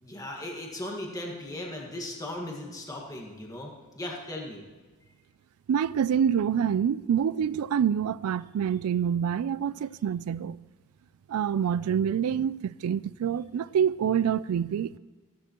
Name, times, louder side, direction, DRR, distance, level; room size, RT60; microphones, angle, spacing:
voice 1, 0.0-4.6, left 1 dB, 15° left, 1.6 m, -37 dB
voice 2, 5.7-10.6 11.3-15.0, right 8 dB, 80° right, 0.3 m, -26 dB
15.5 x 12.5 x 3.0 m
head